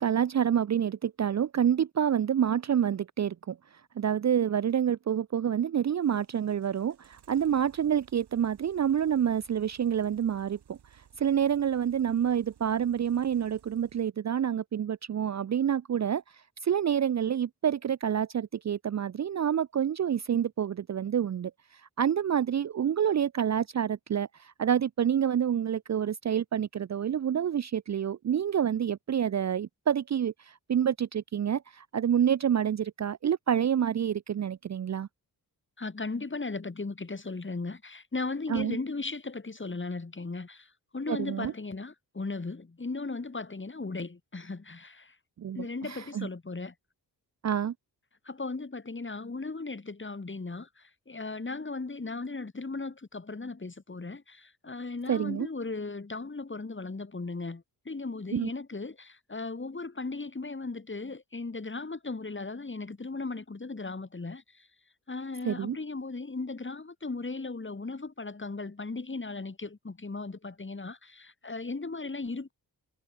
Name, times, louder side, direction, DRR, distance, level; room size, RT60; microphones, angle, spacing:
voice 1, 0.0-3.6 4.0-10.8 11.2-16.2 16.6-21.5 22.0-35.1 38.5-38.8 41.1-41.5 45.4-46.3 47.4-47.7 55.1-55.5 58.3-58.5 65.4-65.8, right 9 dB, 45° right, 0.6 m, -28 dB
sound 1, 6.0-14.1, right 9 dB, 90° right, 6.0 m, -60 dB
voice 2, 35.8-45.2 45.5-46.7 48.2-64.7 65.1-72.5, left 3 dB, 30° left, 5.8 m, -37 dB
cardioid pair, 85°, 39 cm